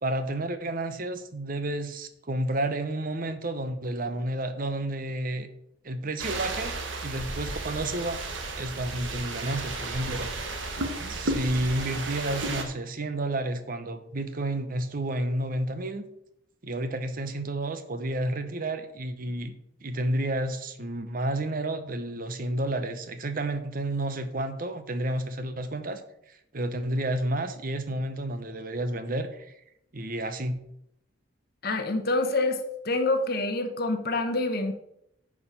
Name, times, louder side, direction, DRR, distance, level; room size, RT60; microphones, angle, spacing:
voice 1, 0.0-5.5 5.8-6.7 7.0-8.2 8.6-10.3 11.0-16.0 16.6-26.0 26.3-29.5 29.9-30.6, right 1 dB, 45° right, 10 dB, 0.8 m, -31 dB
sound 1, 6.2-12.6, right 2 dB, 80° right, 1.3 m, -33 dB
voice 2, 31.6-34.7, left 2 dB, 55° left, 6 dB, 1.1 m, -27 dB
9.7 x 4.9 x 5.7 m, 0.77 s
head